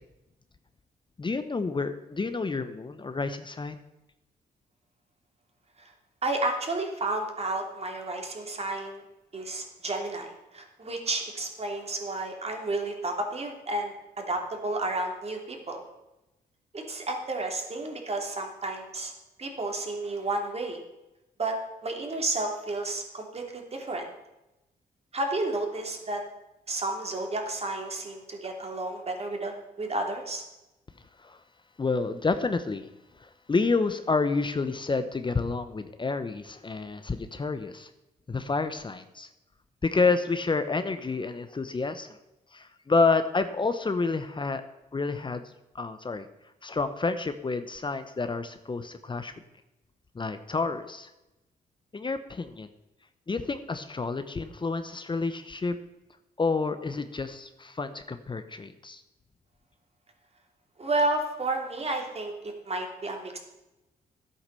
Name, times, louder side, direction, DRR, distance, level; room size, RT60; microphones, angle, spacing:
voice 1, 1.2-3.8 31.2-31.4 31.8-32.9 33.2-37.9 38.3-39.3 39.8-42.2 42.5-44.6 44.9-46.3 46.6-49.3 50.1-51.1 51.9-52.7 53.3-55.8 56.4-59.0, left 4 dB, 30° left, 10 dB, 0.9 m, -29 dB
voice 2, 6.2-9.0 9.3-15.8 16.7-19.1 19.4-20.8 21.4-21.5 21.8-24.1 25.1-26.2 26.7-30.4 60.8-63.4, right 2 dB, 40° right, 3 dB, 3.2 m, -31 dB
12.0 x 8.4 x 6.9 m, 0.95 s
cardioid pair, 70°, 16 cm